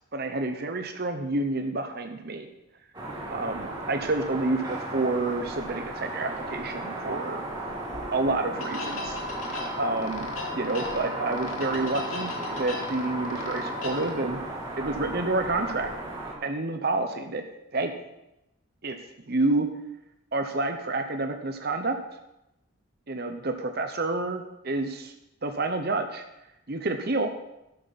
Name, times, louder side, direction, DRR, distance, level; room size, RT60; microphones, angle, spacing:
voice 1, 0.0-2.5 3.3-7.4 8.1-14.4 14.8-15.9 16.4-17.4 17.7-17.9 18.8-19.0 19.3-19.7 20.3-22.0 23.1-25.1 25.4-26.2 26.7-27.3, right 2 dB, 45° right, 6 dB, 0.9 m, -29 dB
sound 1, 2.9-16.3, right 2 dB, 20° right, 2.5 m, -35 dB
sound 2, 8.6-14.1, left 4 dB, 85° left, 2.3 m, -37 dB
12.5 x 11.5 x 4.2 m, 0.88 s
head